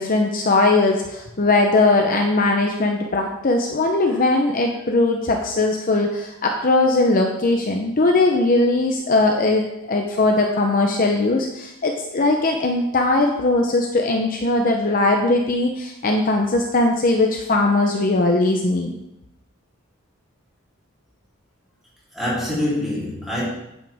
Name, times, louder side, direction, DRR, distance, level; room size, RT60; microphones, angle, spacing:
voice 1, 0.0-18.9, left 2 dB, 40° left, 2 dB, 0.8 m, -19 dB
voice 2, 4.1-4.4 22.1-23.5, left 1 dB, ahead, -8 dB, 3.4 m, -26 dB
9.0 x 7.5 x 3.5 m, 0.86 s
head